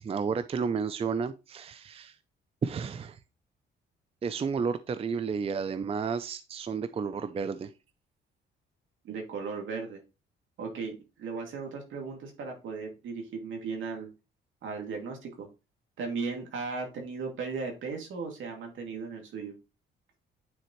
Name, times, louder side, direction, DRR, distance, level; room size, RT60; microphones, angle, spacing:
voice 1, 0.0-2.1 2.6-3.2 4.2-7.7, right 5 dB, 30° right, 13 dB, 0.5 m, -32 dB
voice 2, 9.0-10.0 10.6-14.1 14.6-15.5 16.0-19.5, right 4 dB, 75° right, 2 dB, 2.5 m, -36 dB
9.2 x 4.2 x 3.1 m, 0.29 s
cardioid pair, 90°, 20 cm